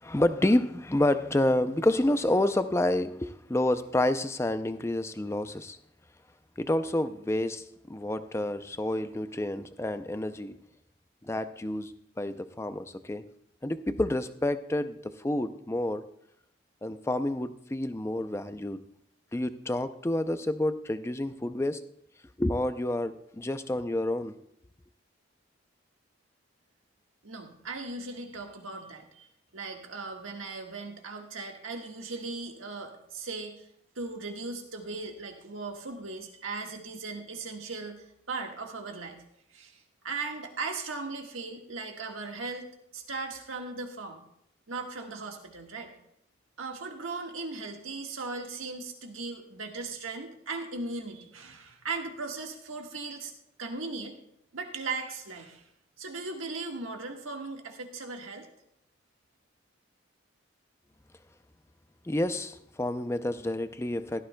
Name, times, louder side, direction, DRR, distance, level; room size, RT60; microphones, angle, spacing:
voice 1, 0.0-5.8 6.6-10.6 11.2-13.2 13.6-16.1 16.8-18.8 19.3-21.9 22.4-24.4 62.1-64.2, left 1 dB, 15° left, 0.4 m, -29 dB
voice 2, 27.2-29.3 29.5-33.6 33.9-39.2 39.5-42.7 42.9-44.2 44.7-45.9 46.6-53.3 53.6-54.2 54.5-55.6 56.0-58.5, right 3 dB, 85° right, 1.6 m, -38 dB
15.5 x 13.0 x 2.2 m
head